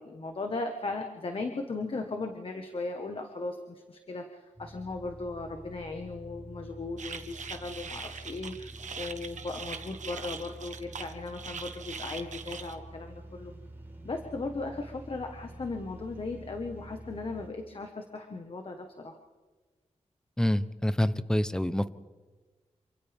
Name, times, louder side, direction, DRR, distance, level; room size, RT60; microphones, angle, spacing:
voice 1, 0.0-4.3 4.6-8.7 9.0-13.5 14.0-19.1, left 3 dB, 50° left, 4 dB, 1.5 m, -37 dB
sound 1, 4.5-17.5, right 1 dB, 15° right, 6.3 m, -47 dB
sound 2, 7.0-12.7, right 5 dB, 90° right, 1.3 m, -41 dB
voice 2, 20.4-21.9, left 1 dB, 5° left, 13 dB, 0.8 m, -27 dB
28.5 x 26.0 x 3.6 m, 1.3 s
wide cardioid pair, 135°, 12 cm